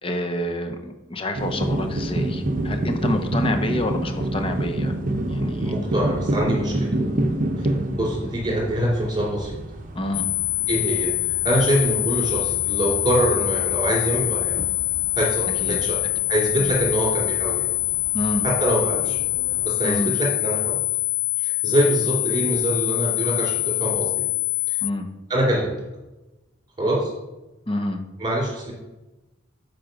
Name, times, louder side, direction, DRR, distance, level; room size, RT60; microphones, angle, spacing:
voice 1, 0.0-4.9 5.3-5.7 9.9-10.3 15.5-15.8 16.6-16.7 18.1-18.4 19.8-20.1 24.8-25.1 27.7-28.0, left 1 dB, 25° left, 5 dB, 0.8 m, -28 dB
sound 1, 1.4-19.7, right 1 dB, 40° right, 0.7 m, -29 dB
voice 2, 5.6-7.0 7.6-9.6 10.7-14.6 15.2-16.0 16.3-17.7 18.4-19.2 19.6-20.8 21.4-24.2 24.7-24.8 25.3-25.7 26.8-27.1 28.2-28.7, right 1 dB, 25° right, -3 dB, 2.8 m, -24 dB
sound 2, 10.1-24.9, left 18 dB, 75° left, 0.4 m, -25 dB
7.7 x 4.9 x 5.2 m, 1.0 s
head